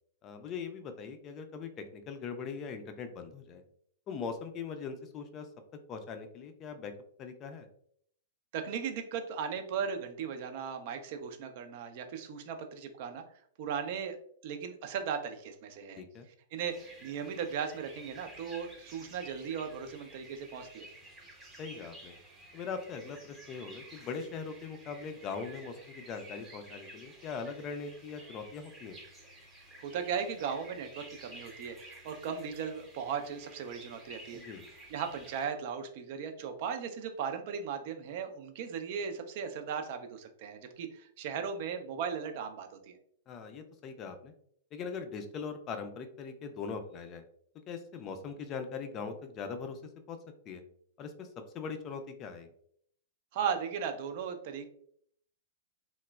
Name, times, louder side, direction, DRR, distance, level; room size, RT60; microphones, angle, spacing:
voice 1, 0.2-3.6 4.1-5.5 5.9-6.9 7.2-7.7 16.0-16.3 21.6-22.1 22.5-29.0 34.3-34.7 43.3-44.3 44.7-47.2 47.7-49.8 50.1-50.2 50.5-50.6 51.0-51.3 51.5-52.5, left 5 dB, 35° left, 7 dB, 0.4 m, -41 dB
voice 2, 8.5-13.2 13.6-14.2 14.4-16.0 16.5-20.9 29.8-34.4 34.9-43.0 53.3-54.7, right 7 dB, 50° right, 7 dB, 0.4 m, -37 dB
sound 1, 16.7-35.5, right 1 dB, 20° right, 0.8 m, -52 dB
3.0 x 2.0 x 2.2 m, 0.65 s
hypercardioid pair, 105°, 0 cm